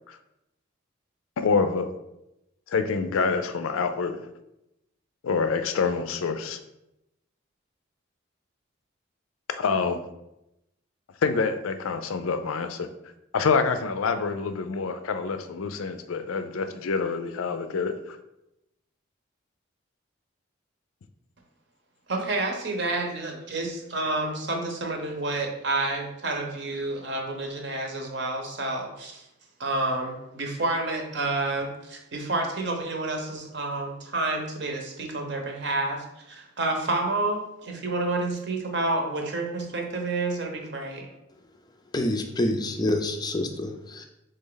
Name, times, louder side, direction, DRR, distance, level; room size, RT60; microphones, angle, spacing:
voice 1, 1.4-1.9 2.7-4.2 5.2-6.6 9.6-10.0 11.2-12.9 13.3-17.9, left 5 dB, 85° left, 9 dB, 0.4 m, -26 dB
voice 2, 22.1-29.2 29.6-41.1, right 2 dB, 55° right, 2 dB, 0.8 m, -29 dB
voice 3, 41.9-44.1, left 1 dB, 20° left, 5 dB, 0.4 m, -27 dB
4.1 x 3.3 x 3.8 m, 0.89 s
head